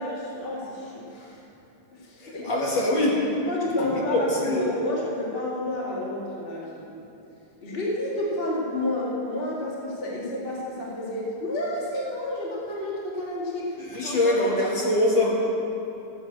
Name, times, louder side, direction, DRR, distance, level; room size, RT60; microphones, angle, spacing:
voice 1, 0.0-1.4 1.9-2.5 3.5-7.1 7.6-13.8 14.0-14.6, left 1 dB, 65° left, -4 dB, 0.5 m, -30 dB
voice 2, 2.2-3.2 3.8-4.6 13.8-15.3, left 1 dB, 45° left, -4 dB, 1.7 m, -24 dB
15.0 x 6.2 x 7.6 m, 2.8 s
omnidirectional pair, 4.3 m